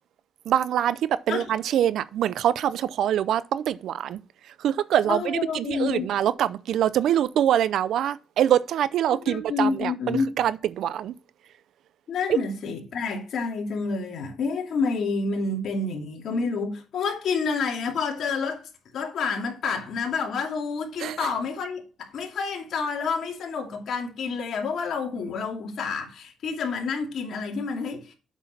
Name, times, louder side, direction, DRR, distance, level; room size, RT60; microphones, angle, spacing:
voice 1, 0.5-4.2 4.6-11.1 21.0-21.2, right 10 dB, 75° right, 0.5 m, -24 dB
voice 2, 5.0-6.1 9.2-10.3 12.1-28.1, left 4 dB, 65° left, 2.5 m, -29 dB
8.0 x 6.2 x 4.2 m
cardioid pair, 90°, 0 cm